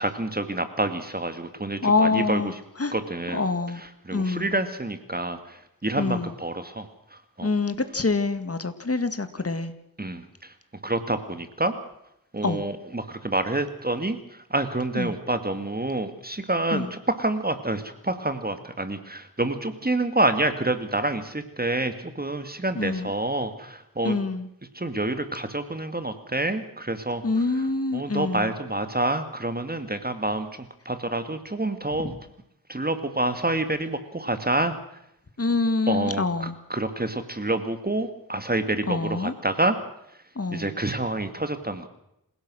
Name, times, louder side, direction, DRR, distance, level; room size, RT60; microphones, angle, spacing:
voice 1, 0.0-2.5 2.9-3.4 3.8-6.9 7.4-7.5 10.0-10.2 10.8-11.7 12.3-14.2 14.5-24.2 24.7-27.2 27.5-27.6 27.9-30.5 30.9-32.1 32.7-34.8 35.9-39.8 40.5-41.9, right 2 dB, 25° right, 9 dB, 2.1 m, -27 dB
voice 2, 1.8-2.5 2.8-2.9 3.3-3.8 4.1-4.5 6.0-6.3 7.4-9.7 12.4-12.6 14.9-15.2 16.7-16.9 22.8-23.1 24.0-24.5 27.2-28.5 32.0-32.2 35.4-36.6 38.9-39.3 40.4-40.8, left 3 dB, 40° left, 10 dB, 2.0 m, -26 dB
27.0 x 17.0 x 6.3 m, 0.79 s
wide cardioid pair, 60°, 37 cm